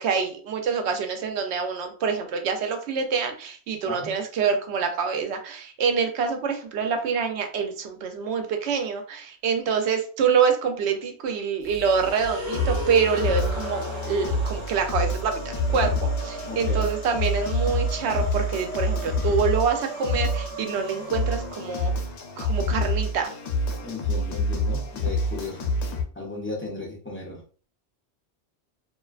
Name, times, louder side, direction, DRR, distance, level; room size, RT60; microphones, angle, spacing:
voice 1, 0.0-21.9 22.4-23.3, right 6 dB, 80° right, 5 dB, 0.8 m, -26 dB
voice 2, 3.9-4.2 16.4-16.9 23.8-25.8 26.2-27.7, left 2 dB, 15° left, -3 dB, 0.4 m, -35 dB
sound 1, 11.7-26.0, left 1 dB, 85° left, 0.9 m, -28 dB
sound 2, 12.0-22.2, right 1 dB, 20° right, 0.9 m, -37 dB
2.4 x 2.2 x 2.3 m, 0.41 s
omnidirectional pair, 1.1 m